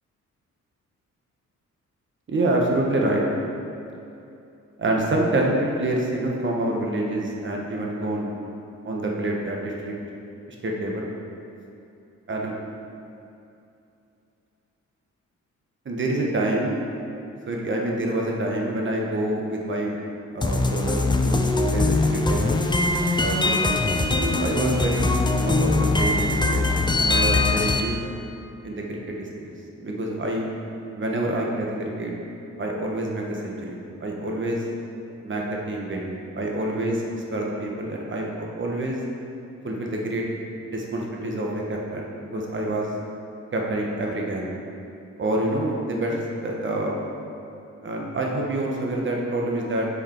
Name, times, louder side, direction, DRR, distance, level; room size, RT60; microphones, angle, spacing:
voice 1, 2.3-3.2 4.8-8.3 8.8-9.9 10.5-11.1 12.3-12.5 15.8-16.8 17.5-20.0 20.3-22.6 23.2-25.1 25.4-26.6 27.0-28.0 28.6-30.5 30.9-32.1 32.6-34.6 35.2-39.0 39.6-40.2 40.7-42.9 43.5-44.5 45.2-47.0 47.8-49.9, right 1 dB, 40° right, -1 dB, 1.1 m, -27 dB
sound 1, 20.4-27.8, left 2 dB, 15° left, 0.4 m, -22 dB
7.6 x 4.9 x 4.4 m, 2.7 s
cardioid pair, 110°, 30 cm